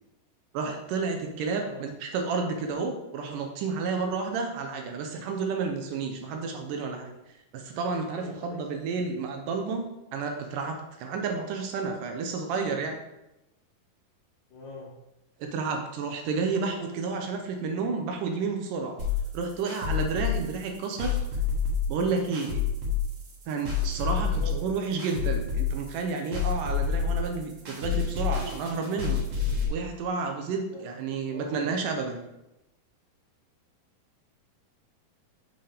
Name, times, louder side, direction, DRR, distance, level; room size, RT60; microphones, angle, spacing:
voice 1, 0.5-7.1 7.5-13.0 15.4-19.0 19.3-21.2 21.9-22.6 23.5-29.2 29.7-32.2, right 4 dB, 75° right, 4 dB, 2.1 m, -31 dB
voice 2, 8.2-8.6 14.5-14.9 22.0-22.2 24.1-24.8 30.7-30.8 31.3-31.7, left 3 dB, 70° left, -4 dB, 2.4 m, -42 dB
sound 1, 19.0-29.7, left 7 dB, 50° right, 1.8 m, -28 dB
7.9 x 5.4 x 3.4 m, 0.91 s
omnidirectional pair, 4.4 m